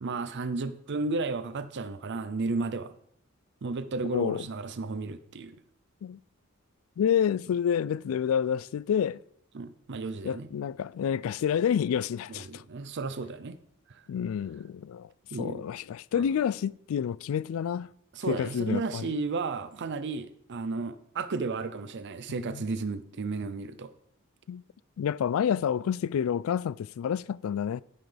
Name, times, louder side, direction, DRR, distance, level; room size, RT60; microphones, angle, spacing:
voice 1, 0.0-2.9 3.6-5.6 9.5-10.5 12.3-13.6 13.9-14.0 15.3-15.7 16.1-16.3 18.1-23.9, right 3 dB, 55° right, 0.5 m, -33 dB
voice 2, 4.1-4.5 6.0-6.2 7.0-9.2 10.2-12.6 14.1-15.1 15.4-17.9 18.3-19.1 22.3-22.7 24.5-24.6 25.0-27.8, left 8 dB, 70° left, 0.3 m, -29 dB
11.0 x 9.4 x 3.4 m
head